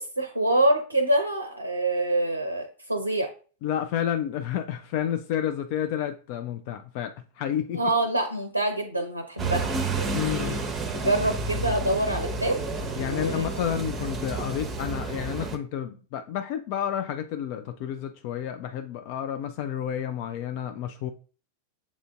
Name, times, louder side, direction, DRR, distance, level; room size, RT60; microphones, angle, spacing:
voice 1, 0.0-3.3 7.7-9.7 10.0-10.6 10.9-12.6 12.9-13.5, right 1 dB, 85° right, 0.5 m, -26 dB
voice 2, 3.6-7.8 10.1-10.6 13.0-21.1, left 9 dB, 45° left, 0.3 m, -30 dB
sound 1, 9.4-15.6, right 3 dB, 20° right, 0.7 m, -31 dB
7.1 x 2.5 x 2.4 m
figure-of-eight pair, 90°, 0 cm